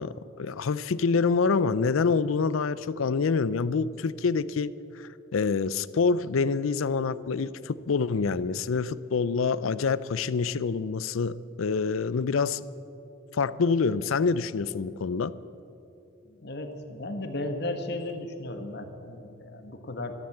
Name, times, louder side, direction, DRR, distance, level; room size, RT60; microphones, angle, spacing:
voice 1, 0.0-12.6 13.3-15.3, left 5 dB, 85° left, 17 dB, 0.5 m, -26 dB
voice 2, 16.2-20.1, left 1 dB, 55° left, 6 dB, 1.3 m, -35 dB
13.5 x 13.0 x 7.8 m, 2.8 s
head